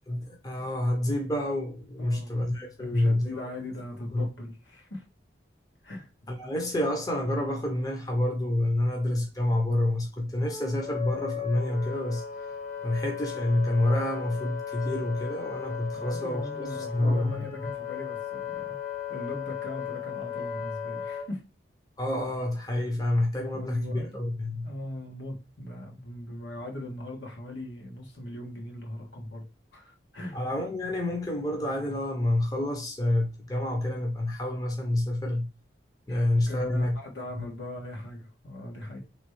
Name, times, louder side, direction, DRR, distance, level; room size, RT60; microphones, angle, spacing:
voice 1, 0.1-3.5 4.1-4.3 6.3-12.2 12.8-17.5 22.0-24.7 30.3-35.5 36.1-37.0, left 1 dB, 20° left, 0.7 m, -28 dB
voice 2, 2.0-2.4 2.8-5.0 5.8-6.1 15.9-18.8 19.1-21.4 23.5-24.2 24.6-29.4 29.7-30.4 36.1-39.0, left 1 dB, 80° left, 1.4 m, -40 dB
Wind instrument woodwind instrument, 10.4-21.3, left 8 dB, 40° left, 1.0 m, -36 dB
3.3 x 3.1 x 3.1 m
head